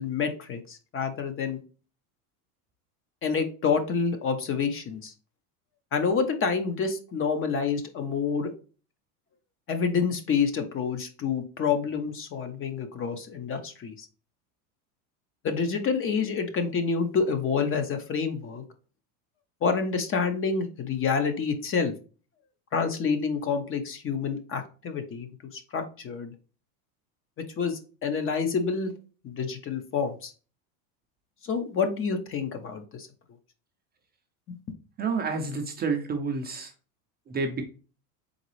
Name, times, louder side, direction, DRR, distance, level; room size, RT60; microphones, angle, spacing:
voice 1, 0.0-1.6 3.2-5.1 5.9-8.5 9.7-14.1 15.4-18.6 19.6-21.9 22.7-26.3 27.6-28.9 29.2-30.3 31.4-33.1 34.5-34.6, left 5 dB, 30° left, 8 dB, 0.7 m, -28 dB
voice 2, 35.0-36.7 37.3-37.7, right 4 dB, 20° right, 4 dB, 0.5 m, -29 dB
3.9 x 3.8 x 3.1 m, 0.37 s
supercardioid pair, 120°, 44 cm